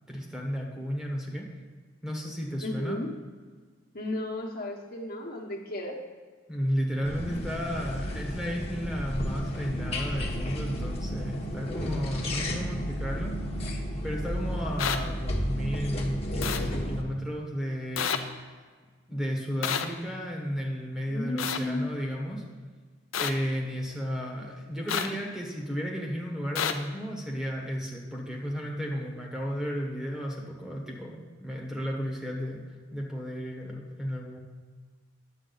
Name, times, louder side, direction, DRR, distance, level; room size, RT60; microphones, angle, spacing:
voice 1, 0.1-1.5 2.0-3.0 6.5-18.5 19.1-22.4 23.2-32.6 32.9-34.4, equal, 5° right, 0 dB, 1.1 m, -33 dB
voice 2, 2.6-3.1 3.9-6.0 21.1-21.9, left 1 dB, 50° left, -1 dB, 1.3 m, -34 dB
sound 1, 7.0-17.0, equal, 30° left, 1.2 m, -32 dB
sound 2, 14.8-15.0 16.4-16.6 18.0-18.2 19.6-19.8 21.4-21.6 23.1-23.3 24.9-25.1 26.6-26.7, left 8 dB, 80° left, 0.6 m, -28 dB
9.7 x 7.4 x 4.0 m, 1.5 s
head